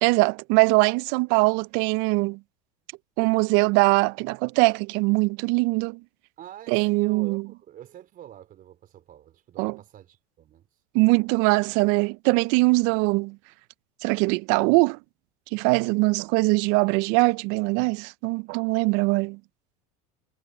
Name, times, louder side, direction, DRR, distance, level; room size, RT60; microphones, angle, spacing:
voice 1, 0.0-2.4 3.2-6.0 6.7-7.4 9.6-9.8 10.9-13.4 14.0-15.0 15.5-19.4, right 27 dB, 65° right, 0.4 m, -22 dB
voice 2, 6.4-10.7, right 11 dB, 45° right, 4.3 m, -46 dB
supercardioid pair, 110°, 20 cm